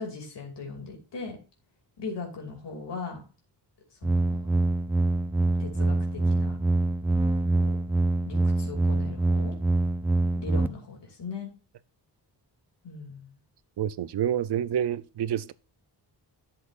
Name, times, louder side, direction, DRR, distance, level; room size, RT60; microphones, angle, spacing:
voice 1, 0.0-1.4 2.0-3.2 4.0-4.5 5.6-6.6 7.5-7.8 8.3-9.5 10.4-11.5 12.8-13.4, left 4 dB, 80° left, 2.7 m, -39 dB
sound 1, 4.0-10.7, right 2 dB, 5° right, 0.4 m, -25 dB
voice 2, 13.8-15.5, right 9 dB, 70° right, 0.6 m, -28 dB
12.0 x 7.6 x 2.5 m
wide cardioid pair, 155°, 41 cm